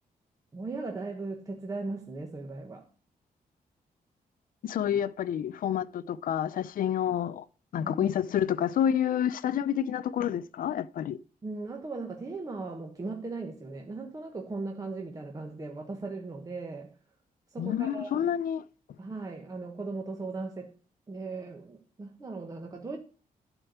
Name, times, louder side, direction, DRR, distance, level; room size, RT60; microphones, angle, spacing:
voice 1, 0.5-2.9 7.8-8.1 11.4-16.9 17.5-18.3 19.0-20.7 21.1-23.0, right 3 dB, 25° right, 1.3 m, -38 dB
voice 2, 4.6-7.4 7.7-11.2 17.6-18.6, left 9 dB, 70° left, 0.6 m, -29 dB
11.5 x 4.5 x 8.0 m
wide cardioid pair, 160°, 15 cm